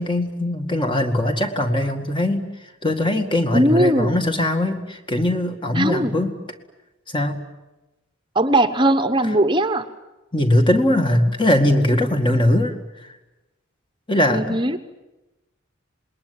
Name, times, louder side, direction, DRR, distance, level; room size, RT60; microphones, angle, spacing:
voice 1, 0.0-2.5 2.8-6.3 7.1-7.4 10.3-12.7 13.0-13.1 14.1-14.6, left 1 dB, 25° left, 5 dB, 2.1 m, -20 dB
voice 2, 3.5-4.3 5.7-6.2 8.3-9.9 14.3-14.8, right 1 dB, 20° right, 10 dB, 1.1 m, -19 dB
27.5 x 21.0 x 9.6 m, 1.0 s
head